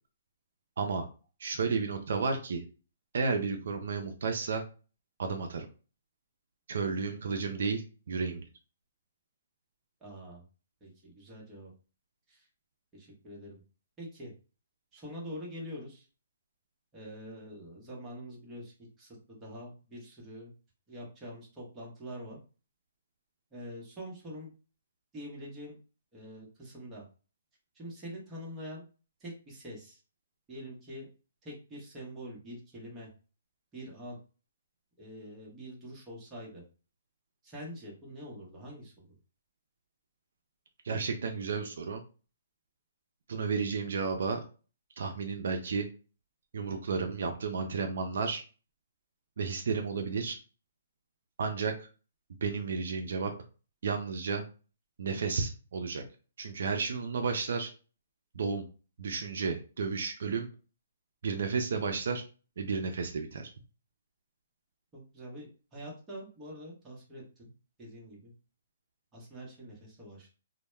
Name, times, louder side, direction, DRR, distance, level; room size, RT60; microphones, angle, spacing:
voice 1, 1.4-2.6 3.1-4.6 5.2-5.7 6.7-8.4 40.8-42.0 43.3-44.4 45.0-45.9 46.5-48.4 49.4-50.4 51.4-51.9 52.4-53.3 53.8-54.4 55.0-56.0 56.4-57.7 58.3-58.6 59.0-60.5 61.2-62.2 62.6-63.5, right 5 dB, 70° right, 4 dB, 0.4 m, -32 dB
voice 2, 10.0-10.4 10.8-11.7 12.3-12.5 12.9-13.6 14.0-14.3 14.9-16.1 16.9-20.5 20.9-22.4 23.5-24.5 25.1-25.8 26.1-27.0 27.7-28.8 29.2-30.0 30.5-31.1 31.4-33.1 33.7-34.2 35.0-36.6 37.4-39.2 64.9-67.5 67.8-68.3 69.1-70.3, equal, 15° right, -3 dB, 0.8 m, -45 dB
2.1 x 2.1 x 3.1 m, 0.36 s
hypercardioid pair, 155°, 0 cm